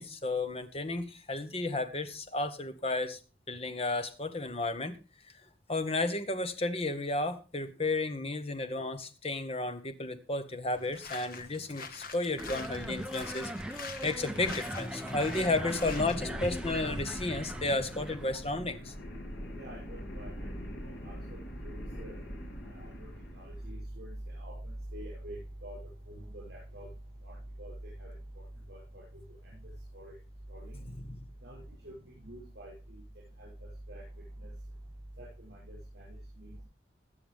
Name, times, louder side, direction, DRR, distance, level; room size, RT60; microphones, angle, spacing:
voice 1, 0.0-3.2 3.5-5.0 5.7-13.5 14.0-18.9 31.0-31.2, left 2 dB, 30° left, 9 dB, 1.2 m, -33 dB
sound 1, 10.7-16.2, left 5 dB, 50° left, 1.3 m, -45 dB
sound 2, 12.4-18.5, equal, 5° right, 0.8 m, -39 dB
sound 3, 14.3-23.8, equal, 75° left, 3.5 m, -43 dB
voice 2, 19.6-22.2 22.7-25.8 26.1-26.9 27.2-27.3 27.6-28.1 28.7-29.0 29.4-29.5 29.9-30.1 30.5-30.7 31.4-31.9 32.2-33.0 33.4-33.5 33.9-34.0 34.4-34.5 35.2-36.6, right 1 dB, 60° right, -6 dB, 7.9 m, -45 dB
20.5 x 7.0 x 3.5 m, 0.34 s
head